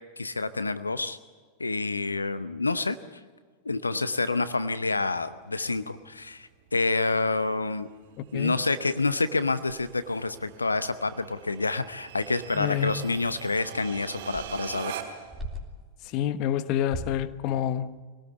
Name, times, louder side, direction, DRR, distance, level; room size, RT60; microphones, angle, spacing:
voice 1, 0.2-1.2 1.6-3.0 3.6-7.9 8.3-14.9, left 3 dB, 80° left, 0.8 m, -28 dB
sound 1, 5.1-15.4, right 9 dB, 50° right, 4.9 m, -44 dB
sound 2, 5.4-6.3 6.9-7.0 7.2-7.5 7.8-7.9 8.2-8.7 9.1-9.2 9.7-15.9 16.7-17.3, equal, 5° right, 3.3 m, -44 dB
voice 2, 8.2-8.6 12.5-13.0 16.0-18.0, left 10 dB, 40° left, 1.2 m, -28 dB
25.0 x 18.5 x 8.2 m
figure-of-eight pair, 90°, 0 cm